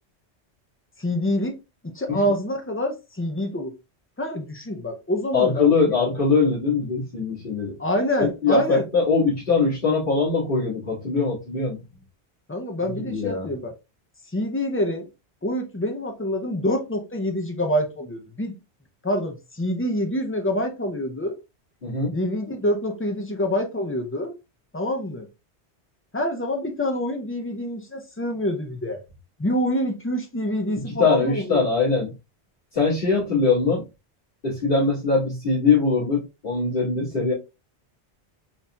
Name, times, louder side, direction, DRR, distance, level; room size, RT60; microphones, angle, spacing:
voice 1, 1.0-1.6 1.8-3.8 4.2-5.7 7.8-8.8 12.5-13.7 14.3-15.1 15.4-18.6 19.0-21.4 22.1-24.3 24.7-25.3 26.1-29.0 29.4-31.6, left 1 dB, 15° left, 0.5 m, -26 dB
voice 2, 5.3-7.8 8.2-11.8 12.8-13.5 21.8-22.2 30.8-32.1 32.7-33.9 34.4-37.3, left 4 dB, 55° left, 2.1 m, -22 dB
4.0 x 4.0 x 2.3 m
omnidirectional pair, 1.1 m